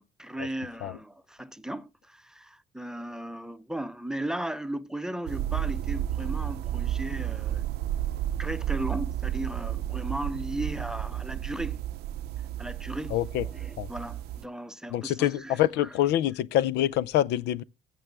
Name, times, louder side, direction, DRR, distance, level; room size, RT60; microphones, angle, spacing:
voice 1, 0.0-7.6 8.4-11.8 12.4-13.2 13.4-15.9, right 1 dB, 5° right, 0.7 m, -36 dB
sound 1, 5.3-14.4, right 12 dB, 75° right, 0.6 m, -32 dB
voice 2, 13.1-13.4 13.8-13.9 14.9-17.6, left 12 dB, 80° left, 0.5 m, -26 dB
15.5 x 6.1 x 3.4 m
cardioid pair, 110°, 17 cm